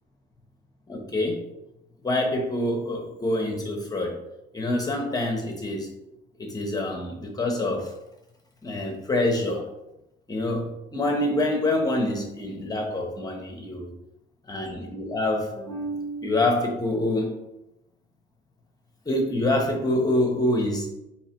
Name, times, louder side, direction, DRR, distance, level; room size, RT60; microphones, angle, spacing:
voice 1, 0.9-1.4 2.0-4.2 4.5-5.9 6.4-7.9 8.6-9.7 10.3-13.9 14.5-17.3 19.1-20.9, left 1 dB, 20° left, 2 dB, 0.8 m, -26 dB
3.9 x 2.9 x 4.3 m, 0.89 s
cardioid pair, 110°, 17 cm